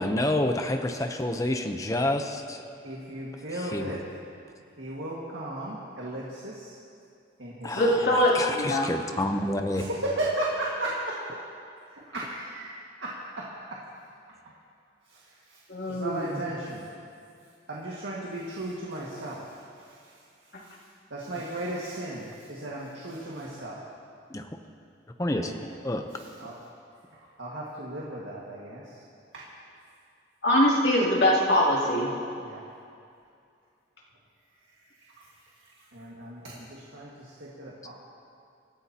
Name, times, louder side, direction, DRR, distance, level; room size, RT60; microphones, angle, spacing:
voice 1, 0.0-2.6 3.7-3.9 7.6-9.8 24.3-24.5 25.2-25.5 25.8-26.1, left 1 dB, 15° left, 5 dB, 0.7 m, -28 dB
voice 2, 2.8-4.0 4.8-6.8 7.4-8.1 9.7-11.4 11.9-13.8 15.1-15.2 15.5-15.6 15.9-16.8 17.7-19.6 20.6-20.7 21.1-23.8 25.3-25.6 26.1-26.5 27.4-28.8 29.3-29.4 32.4-32.6 35.9-37.9, right 1 dB, 75° right, -5 dB, 1.8 m, -35 dB
voice 3, 7.7-8.9 15.7-16.4 30.4-32.1, left 1 dB, 60° left, -5 dB, 2.8 m, -23 dB
25.0 x 14.0 x 2.9 m, 2.4 s
head